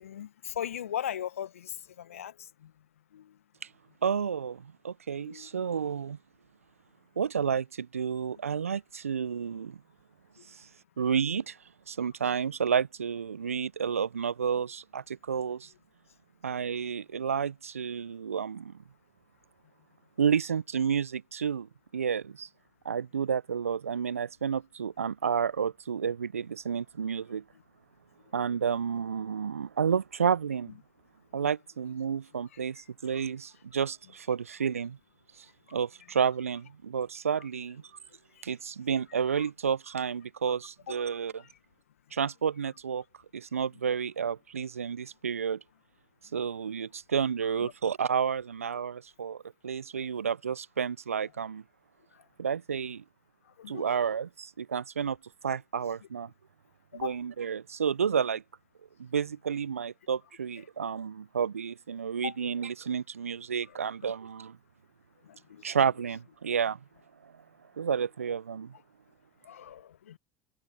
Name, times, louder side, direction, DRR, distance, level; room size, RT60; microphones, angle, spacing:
voice 1, 0.0-2.7 3.1-3.4 5.2-5.5 10.4-10.5 31.3-31.5 32.5-32.6 33.1-33.2 35.7-35.8 39.4-39.5 40.9-41.0 41.4-41.5 47.5-47.7 52.1-52.2 53.6-53.9 56.9-57.2 62.2-62.5 63.7-63.8 65.2-65.7 69.4-70.2, left 9 dB, 75° left, 1.8 m, -39 dB
voice 2, 4.0-6.2 7.2-9.8 10.5-10.7 11.0-11.6 11.9-15.7 16.4-18.8 20.2-22.5 22.8-27.4 28.3-30.7 31.3-35.0 35.4-37.8 38.4-41.4 42.1-43.0 43.3-45.6 46.3-51.6 52.4-53.0 53.7-55.2 55.4-56.3 56.9-58.4 59.0-64.6 65.6-66.8 67.2-67.4 67.8-68.7, right 7 dB, 80° right, 1.1 m, -31 dB
figure-of-eight pair, 65°, 7 cm